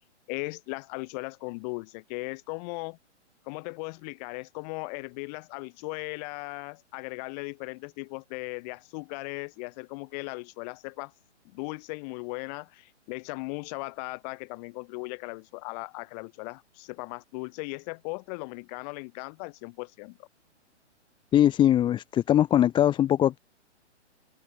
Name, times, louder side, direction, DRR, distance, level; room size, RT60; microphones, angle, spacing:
voice 1, 0.3-3.0 3.4-11.1 11.4-20.3, left 29 dB, 35° left, 6.9 m, -37 dB
voice 2, 21.3-23.4, left 11 dB, 15° left, 0.9 m, -21 dB
open air
hypercardioid pair, 130°, 36 cm